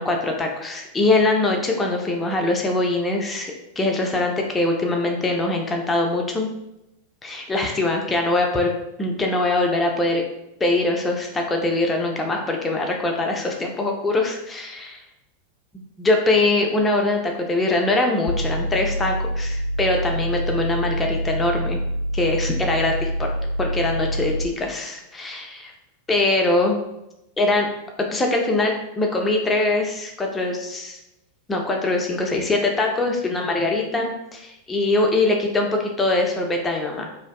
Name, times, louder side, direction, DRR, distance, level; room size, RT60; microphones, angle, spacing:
voice 1, 0.0-6.5 7.2-8.7 9.0-10.2 10.6-15.0 15.7-21.8 22.1-23.3 23.6-25.6 26.1-26.8 27.4-27.7 28.1-31.0 31.5-37.1, left 2 dB, 15° left, 1 dB, 0.4 m, -22 dB
sound 1, 18.3-24.5, equal, 65° left, 0.5 m, -26 dB
2.5 x 2.2 x 2.2 m, 0.89 s
figure-of-eight pair, 90°, 0 cm